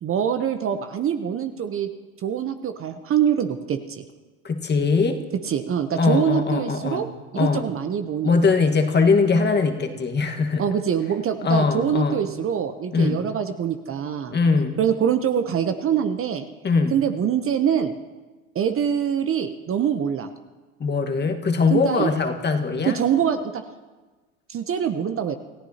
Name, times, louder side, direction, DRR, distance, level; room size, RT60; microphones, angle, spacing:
voice 1, 0.0-1.9 2.2-4.0 5.4-7.0 7.3-8.3 10.6-14.4 14.8-16.5 16.9-17.9 18.5-20.3 21.7-22.1 22.9-23.6 24.5-25.4, right 8 dB, 30° right, 8 dB, 0.9 m, -24 dB
voice 2, 4.4-5.2 6.0-7.1 7.3-7.6 8.2-10.6 11.4-12.2 12.9-13.2 14.3-14.8 16.6-17.0 20.8-23.0, left 4 dB, 25° left, 5 dB, 1.6 m, -21 dB
28.0 x 14.5 x 2.9 m, 1.3 s
hypercardioid pair, 90°, 41 cm